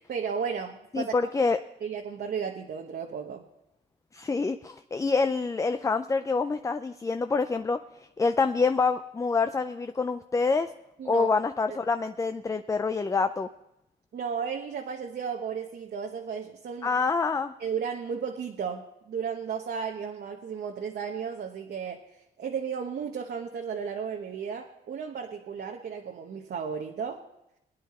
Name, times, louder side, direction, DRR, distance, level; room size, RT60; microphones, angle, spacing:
voice 1, 0.0-1.1 1.8-3.4 11.0-11.3 14.1-16.9 17.6-27.2, right 6 dB, 55° right, 2 dB, 1.1 m, -34 dB
voice 2, 0.9-1.6 4.1-7.8 8.2-10.7 11.0-13.5 16.8-17.5, left 4 dB, 15° left, 9 dB, 0.4 m, -26 dB
22.0 x 9.4 x 4.2 m, 0.86 s
cardioid pair, 90°, 20 cm